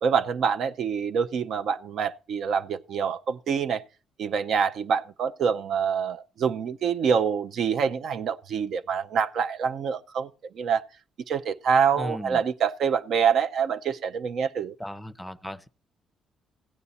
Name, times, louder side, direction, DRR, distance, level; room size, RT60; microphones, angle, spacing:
voice 1, 0.0-3.8 4.2-10.3 10.6-10.8 11.3-14.7, right 6 dB, 70° right, 0.5 m, -26 dB
voice 2, 12.0-12.4 14.8-15.7, equal, 5° left, 0.6 m, -36 dB
15.5 x 8.5 x 4.1 m
cardioid pair, 90°, 0 cm